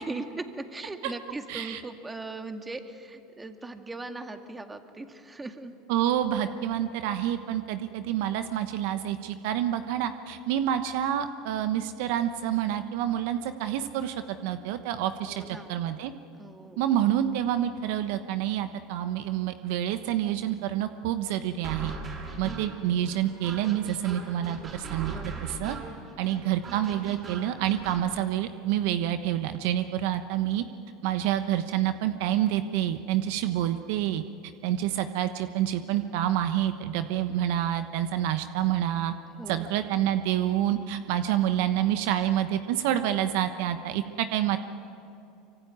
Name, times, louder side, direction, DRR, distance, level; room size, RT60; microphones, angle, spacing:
voice 1, 0.0-5.7 15.2-15.7 16.4-16.8 25.1-25.4 39.4-39.7, right 3 dB, 15° right, 6 dB, 2.2 m, -39 dB
voice 2, 1.5-1.8 5.9-16.1 16.8-21.9 22.4-25.8 26.2-30.6 31.0-34.2 34.6-39.1 39.5-44.6, right 11 dB, 70° right, 9 dB, 1.1 m, -28 dB
sound 1, 21.6-28.0, right 4 dB, 35° right, 7.7 m, -39 dB
24.5 x 24.5 x 9.5 m, 2.6 s
hypercardioid pair, 90°, 0 cm